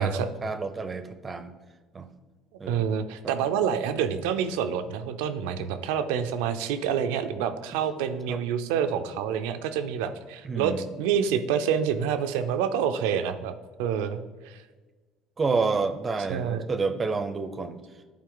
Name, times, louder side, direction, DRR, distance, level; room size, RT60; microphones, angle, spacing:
voice 1, 0.0-1.5 1.9-2.1 2.6-2.8 3.2-3.3 8.3-8.4 10.4-10.8 15.4-17.8, right 4 dB, 25° right, 10 dB, 0.6 m, -29 dB
voice 2, 2.7-14.6 16.3-16.7, right 8 dB, 90° right, 9 dB, 0.5 m, -27 dB
10.5 x 4.2 x 3.9 m, 1.3 s
supercardioid pair, 105°, 0 cm